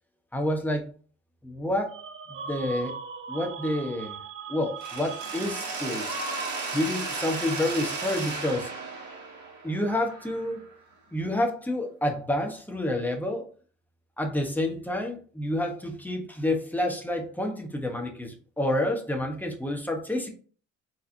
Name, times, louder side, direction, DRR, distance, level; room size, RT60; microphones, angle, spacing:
voice 1, 0.3-0.9 1.4-2.0 2.3-2.9 3.3-4.2 4.5-6.2 6.7-8.7 9.6-10.7 11.1-13.4 14.2-20.3, left 1 dB, 5° left, 1 dB, 1.1 m, -29 dB
sound 1, 1.9-6.0, right 6 dB, 45° right, 0.5 m, -40 dB
Mechanisms, 4.8-10.7, right 3 dB, 70° right, 1.6 m, -34 dB
4.4 x 3.9 x 2.7 m, 0.41 s
cardioid pair, 90°, 30 cm